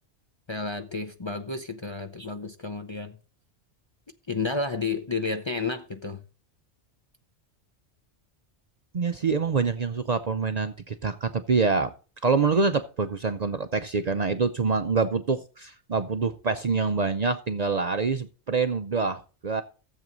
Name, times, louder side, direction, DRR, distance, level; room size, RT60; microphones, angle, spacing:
voice 1, 0.5-3.2 4.3-6.2, left 3 dB, 30° left, 0.6 m, -31 dB
voice 2, 8.9-11.9 12.2-19.6, right 4 dB, 45° right, 0.6 m, -26 dB
13.5 x 7.6 x 3.9 m
omnidirectional pair, 1.2 m